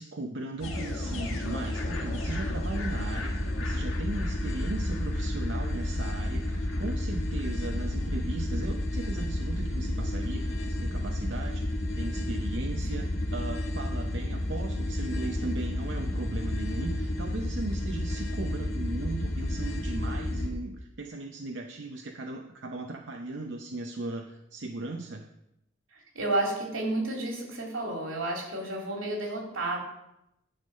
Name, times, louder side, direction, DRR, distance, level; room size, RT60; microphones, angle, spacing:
voice 1, 0.0-25.2, right 2 dB, 65° right, 2 dB, 0.7 m, -37 dB
sound 1, 0.6-20.5, left 1 dB, 85° left, 1.4 m, -31 dB
voice 2, 25.9-29.8, right 2 dB, 90° right, -1 dB, 2.8 m, -31 dB
10.5 x 5.5 x 5.4 m, 0.83 s
head